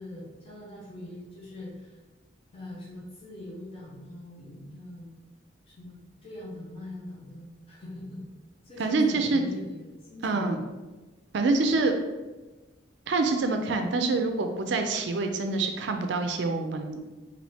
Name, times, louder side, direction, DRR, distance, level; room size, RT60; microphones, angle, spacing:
voice 1, 0.0-2.0 2.5-5.1 5.6-8.2 8.6-10.6, left 1 dB, 30° left, -6 dB, 0.9 m, -42 dB
voice 2, 8.8-9.4 10.2-10.6 11.3-12.0 13.1-17.0, right 3 dB, 65° right, 5 dB, 0.4 m, -26 dB
4.0 x 2.6 x 3.4 m, 1.2 s
head